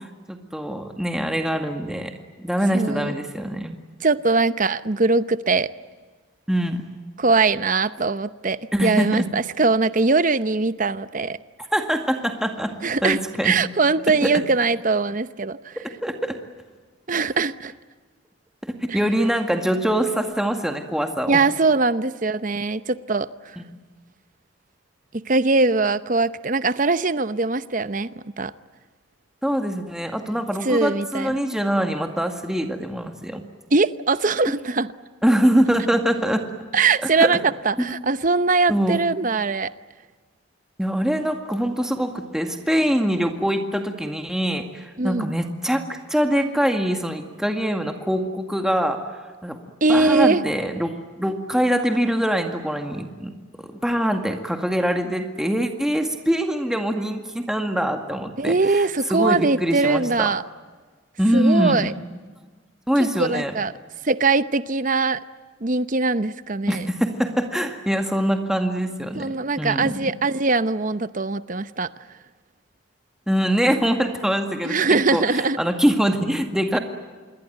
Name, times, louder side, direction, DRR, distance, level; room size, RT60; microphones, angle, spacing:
voice 1, 0.0-2.1 2.4-3.8 6.5-6.8 8.7-9.3 11.7-12.7 13.0-13.5 14.2-14.3 15.8-16.4 18.6-21.4 23.6-23.7 29.4-33.4 35.2-36.4 37.0-37.3 38.7-39.0 40.8-49.0 49.4-49.6 49.9-60.3 61.2-61.9 62.9-63.5 66.7-70.0 73.3-74.8 75.1-76.8, equal, 5° right, 4 dB, 2.0 m, -23 dB
voice 2, 2.7-3.1 4.0-5.7 7.2-11.4 12.8-15.8 17.1-17.7 18.9-19.0 21.3-23.3 25.3-28.1 28.4-28.5 30.6-31.4 33.7-34.9 36.7-39.7 45.0-45.3 49.8-50.4 58.4-60.4 61.3-61.9 63.2-63.7 64.0-65.2 65.6-66.9 69.2-71.9 74.6-75.6, right 3 dB, 40° right, 14 dB, 0.8 m, -21 dB
27.0 x 22.5 x 9.2 m, 1.4 s
head